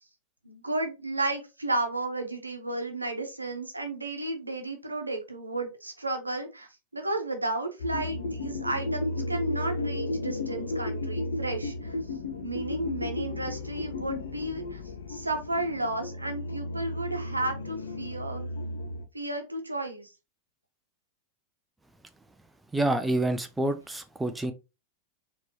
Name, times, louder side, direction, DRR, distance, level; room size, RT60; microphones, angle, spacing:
voice 1, 0.4-12.0 12.4-14.8 15.1-18.5 19.1-20.1, right 2 dB, 85° right, 0.9 m, -33 dB
sound 1, 7.8-19.0, left 2 dB, 70° left, 0.7 m, -34 dB
voice 2, 22.7-24.5, right 1 dB, 5° right, 0.6 m, -27 dB
4.3 x 3.1 x 3.0 m
figure-of-eight pair, 90°, 0 cm